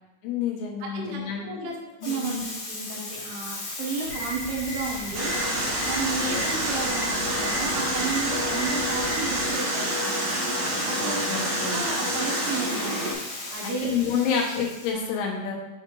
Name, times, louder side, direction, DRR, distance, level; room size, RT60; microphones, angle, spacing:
voice 1, 0.2-1.7 2.0-2.5 11.0-11.8 13.6-15.5, left 6 dB, 85° left, -1 dB, 3.2 m, -29 dB
voice 2, 0.8-1.8 2.0-2.4 2.7-5.3 5.9-10.1 10.8-13.1 13.5-14.3 14.9-15.0, right 3 dB, 75° right, 0 dB, 2.9 m, -33 dB
Bathtub (filling or washing), 2.0-14.9, left 2 dB, 60° left, 1.9 m, -38 dB
sound 1, 4.0-9.5, equal, 40° right, 2.1 m, -37 dB
sound 2, 5.1-13.1, right 1 dB, 55° right, 2.6 m, -27 dB
6.4 x 5.7 x 3.0 m, 1.1 s
omnidirectional pair, 4.8 m